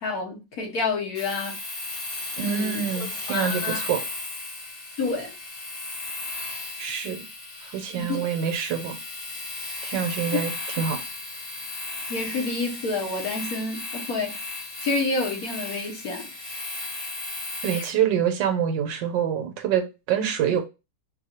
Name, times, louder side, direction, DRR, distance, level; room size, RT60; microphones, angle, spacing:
voice 1, 0.0-1.6 2.4-2.8 3.3-3.8 5.0-5.3 8.0-8.2 12.1-14.3 14.8-16.3, left 3 dB, 60° left, 1.3 m, -28 dB
Domestic sounds home sounds, 1.1-18.0, left 2 dB, 35° left, 1.1 m, -35 dB
voice 2, 2.4-4.0 6.8-7.2 7.7-9.0 9.8-10.5 10.8-11.0 17.6-20.6, right 8 dB, 75° right, 1.3 m, -26 dB
4.7 x 2.3 x 2.9 m
omnidirectional pair, 2.0 m